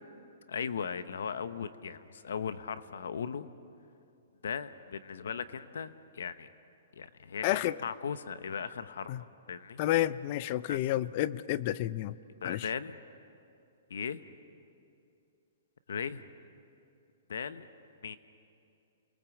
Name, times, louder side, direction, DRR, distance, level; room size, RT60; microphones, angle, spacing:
voice 1, 0.5-3.5 4.4-6.5 7.0-9.8 10.7-10.8 12.4-13.0 13.9-14.2 15.9-16.2 17.3-17.7 18.0-18.2, left 6 dB, 80° left, 13 dB, 0.9 m, -38 dB
voice 2, 7.4-7.8 9.1-9.2 9.8-12.2 12.4-12.7, left 14 dB, 35° left, 18 dB, 0.5 m, -30 dB
29.0 x 21.0 x 7.2 m, 2.6 s
hypercardioid pair, 165°, 0 cm